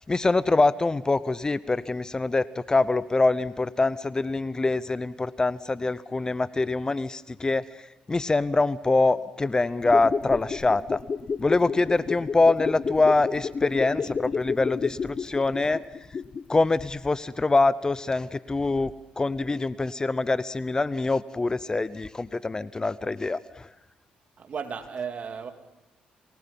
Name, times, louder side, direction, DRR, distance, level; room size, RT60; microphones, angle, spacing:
voice 1, 0.1-11.0 11.4-15.8 16.5-23.7, left 3 dB, 25° left, 17 dB, 0.7 m, -24 dB
sound 1, 9.8-16.6 16.9-17.0, left 5 dB, 40° left, 1.0 m, -31 dB
voice 2, 24.4-25.5, right 6 dB, 50° right, 6 dB, 2.6 m, -35 dB
28.5 x 20.0 x 5.5 m, 0.96 s
supercardioid pair, 75°, 3 cm